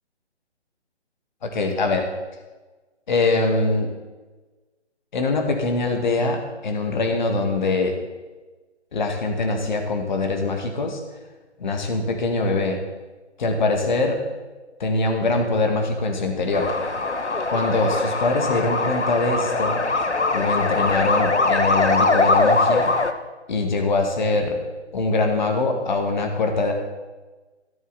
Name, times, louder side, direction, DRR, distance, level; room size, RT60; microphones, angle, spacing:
voice 1, 1.4-2.1 3.1-3.9 5.1-8.0 8.9-11.0 11.6-12.8 13.4-14.2 14.8-16.7 17.5-19.8 20.3-22.9 23.5-24.6 24.9-26.7, left 3 dB, 40° left, 3 dB, 2.1 m, -23 dB
sound 1, 16.5-23.1, left 3 dB, 80° left, 1.2 m, -21 dB
14.0 x 12.0 x 4.2 m, 1.2 s
figure-of-eight pair, 145°, 34 cm